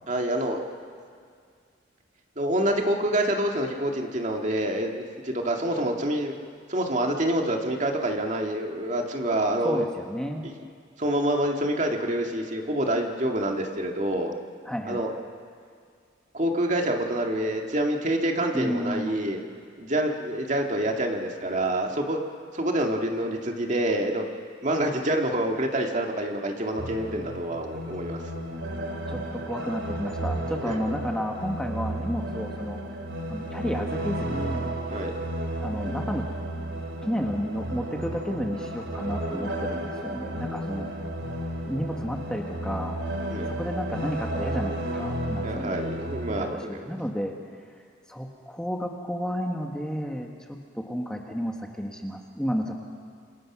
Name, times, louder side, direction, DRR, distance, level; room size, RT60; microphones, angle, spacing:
voice 1, 0.1-0.6 2.4-6.3 6.7-9.8 10.4-10.5 11.0-14.3 14.9-15.1 16.3-19.4 19.8-22.2 22.5-24.2 24.6-28.2 30.7-30.8 34.9-35.1 43.3-43.5 45.4-46.9, right 1 dB, 40° right, 2 dB, 2.2 m, -27 dB
voice 2, 9.6-10.5 14.6-15.0 18.5-19.2 29.1-32.8 33.3-34.7 35.6-36.3 37.0-40.9 41.7-43.0 43.5-45.8 46.4-47.4 47.7-47.8 48.1-52.7, equal, 5° left, 1 dB, 1.6 m, -32 dB
sound 1, 26.8-46.5, right 1 dB, 85° right, 3.2 m, -33 dB
27.5 x 27.0 x 6.2 m, 2.1 s
head